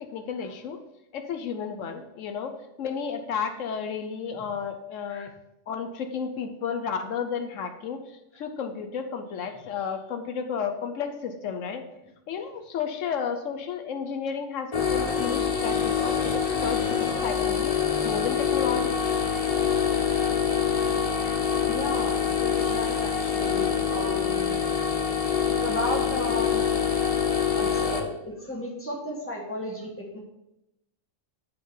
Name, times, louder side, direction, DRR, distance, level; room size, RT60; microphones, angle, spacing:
voice 1, 0.1-0.8 1.1-2.5 2.8-5.3 5.7-11.8 12.3-17.7 18.0-19.0, left 6 dB, 80° left, 6 dB, 1.0 m, -32 dB
sound 1, 14.7-28.0, left 7 dB, 35° left, 0.7 m, -25 dB
voice 2, 21.6-24.6 25.5-26.6 27.5-30.2, equal, 10° left, -1 dB, 1.4 m, -34 dB
9.3 x 3.8 x 5.5 m, 0.89 s
omnidirectional pair, 1.3 m